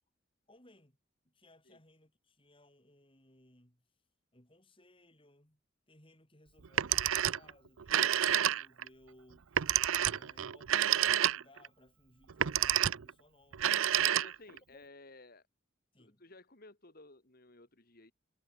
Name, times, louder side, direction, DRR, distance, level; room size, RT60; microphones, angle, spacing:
voice 1, 0.5-1.0 1.2-3.8 4.3-5.6 5.9-9.5 9.9-13.7 14.7-14.8 15.9-16.2, left 1 dB, 25° left, 6.4 m, -63 dB
Telephone, 6.6-7.5 7.8-8.9 9.6-11.7 12.3-13.1 13.5-14.6, right 11 dB, 80° right, 0.6 m, -29 dB
voice 2, 14.1-15.5 16.0-18.1, left 2 dB, 45° left, 2.6 m, -56 dB
head